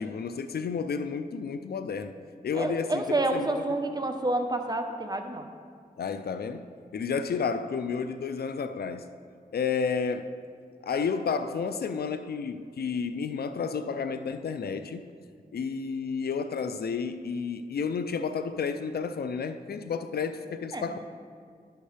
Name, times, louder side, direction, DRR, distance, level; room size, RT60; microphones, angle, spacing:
voice 1, 0.0-2.1 2.4-3.0 3.3-3.5 6.0-9.1 9.5-10.3 10.8-15.0 15.5-21.0, left 5 dB, 80° left, 0.4 m, -31 dB
voice 2, 2.5-5.5 20.7-20.9, right 2 dB, 25° right, 0.9 m, -29 dB
10.5 x 8.1 x 3.3 m
cardioid pair, 50°, 16 cm